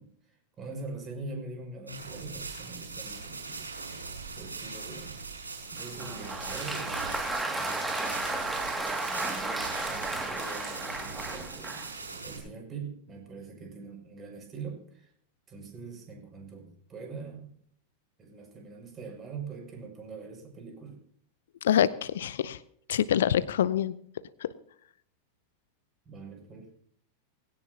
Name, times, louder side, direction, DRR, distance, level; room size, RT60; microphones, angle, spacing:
voice 1, 0.0-3.7 4.3-5.1 5.7-8.2 8.8-15.1 15.5-17.5 18.2-21.0 26.0-26.7, right 4 dB, 25° right, 2 dB, 6.5 m, -43 dB
sound 1, 1.9-12.4, right 4 dB, 80° right, 6.9 m, -41 dB
Applause, 5.8-11.9, right 2 dB, 10° right, 2.3 m, -33 dB
voice 2, 21.6-22.6 22.9-23.9 24.4-24.5, left 10 dB, 60° left, 18 dB, 0.6 m, -25 dB
21.0 x 17.0 x 2.9 m, 0.64 s
figure-of-eight pair, 90°, 0 cm